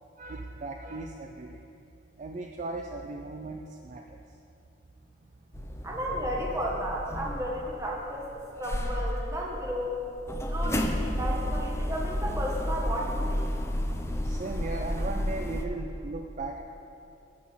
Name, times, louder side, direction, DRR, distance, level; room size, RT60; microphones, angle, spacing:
voice 1, 0.2-1.6 2.2-4.2 14.2-16.6, right 3 dB, 40° right, 3 dB, 0.4 m, -37 dB
sound 1, 5.5-8.3 8.6-15.7, left 1 dB, 15° left, 0.5 m, -31 dB
voice 2, 5.8-8.3 8.6-10.0 10.5-13.4, equal, 15° right, -3 dB, 1.3 m, -33 dB
11.5 x 4.2 x 7.5 m, 2.9 s
head